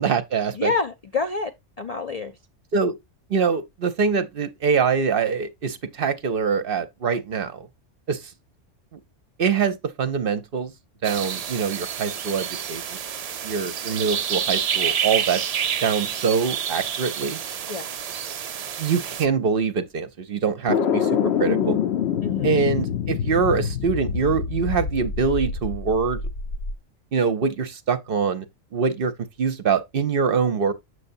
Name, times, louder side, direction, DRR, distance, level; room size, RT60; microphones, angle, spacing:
voice 1, 0.0-0.7 2.7-2.9 3.3-7.7 8.1-8.3 8.9-9.0 9.4-10.7 11.0-13.0 13.4-15.4 15.8-17.4 18.8-21.8 22.4-26.2 27.1-28.4 28.7-30.7, right 5 dB, 55° right, 0.8 m, -24 dB
voice 2, 0.5-2.3 17.7-17.9 22.2-22.5, left 4 dB, 50° left, 0.5 m, -28 dB
sound 1, 11.0-19.3, right 8 dB, 85° right, 0.3 m, -28 dB
sound 2, 20.7-26.8, left 7 dB, 65° left, 0.9 m, -25 dB
7.9 x 6.7 x 2.6 m
omnidirectional pair, 1.3 m